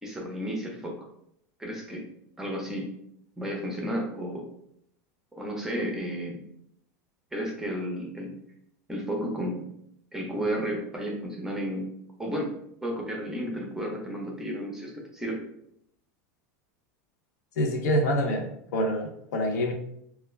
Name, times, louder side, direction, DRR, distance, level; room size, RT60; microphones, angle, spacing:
voice 1, 0.0-1.1 1.6-2.0 2.4-2.9 3.4-4.5 5.3-6.4 7.3-8.3 8.9-9.7 10.1-11.9 12.2-12.5 12.8-15.4, equal, 5° right, 0 dB, 0.6 m, -32 dB
voice 2, 17.6-19.7, equal, 80° left, 3 dB, 0.6 m, -26 dB
2.3 x 2.1 x 3.1 m, 0.73 s
supercardioid pair, 130°, 9 cm